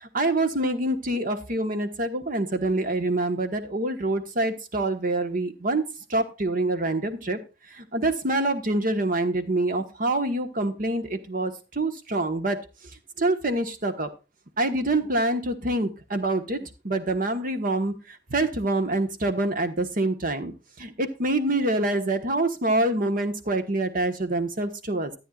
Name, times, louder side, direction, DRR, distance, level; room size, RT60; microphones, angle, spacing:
voice 1, 0.0-5.8 6.1-7.4 7.8-12.6 13.2-14.1 14.6-17.9 18.3-20.5 20.8-25.1, right 2 dB, 50° right, 9 dB, 1.3 m, -26 dB
13.5 x 9.2 x 2.4 m, 0.30 s
head